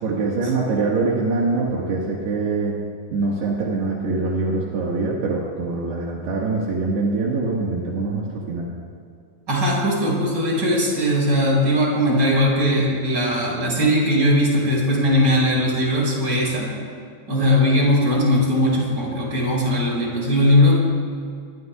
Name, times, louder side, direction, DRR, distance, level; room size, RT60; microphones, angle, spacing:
voice 1, 0.0-2.8 3.1-8.7, right 3 dB, 70° right, -4 dB, 3.8 m, -24 dB
voice 2, 9.5-16.7 17.3-20.7, left 1 dB, 25° right, -4 dB, 6.0 m, -19 dB
25.5 x 22.0 x 2.4 m, 2.3 s
omnidirectional pair, 5.0 m